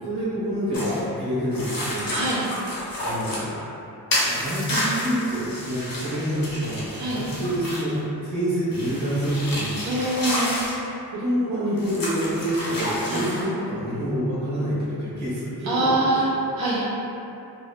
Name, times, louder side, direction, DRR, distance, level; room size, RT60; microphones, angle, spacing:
voice 1, 0.0-2.1 3.0-3.5 4.2-10.2 11.1-16.3, equal, 80° right, -11 dB, 0.9 m, -27 dB
sound 1, 0.7-1.0 1.5-3.5 4.1-8.0 8.7-10.8 11.8-13.5, left 1 dB, 55° left, 0.7 m, -30 dB
voice 2, 2.1-2.4 7.0-7.2 9.8-10.6 13.1-13.3 15.6-16.2 16.6-16.8, right 2 dB, 60° right, -7 dB, 0.5 m, -24 dB
2.6 x 2.0 x 2.4 m, 2.8 s
wide cardioid pair, 95°, 41 cm